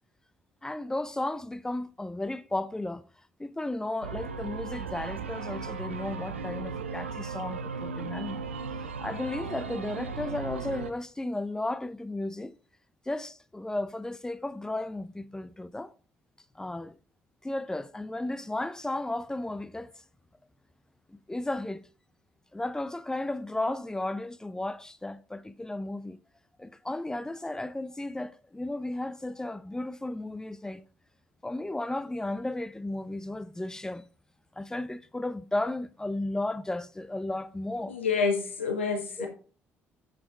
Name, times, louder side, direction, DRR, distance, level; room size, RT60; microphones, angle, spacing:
voice 1, 0.6-3.0 3.4-8.4 8.8-12.5 13.1-15.9 16.5-16.9 17.4-19.9 21.1-21.8 22.5-26.2 26.6-30.8 31.4-34.1 34.6-37.9 39.2-39.3, left 2 dB, 10° left, 0.5 m, -34 dB
sound 1, 4.0-10.9, right 4 dB, 85° right, 0.5 m, -36 dB
voice 2, 37.9-39.3, left 5 dB, 85° left, 1.0 m, -28 dB
7.6 x 6.3 x 3.5 m
figure-of-eight pair, 50°, 6 cm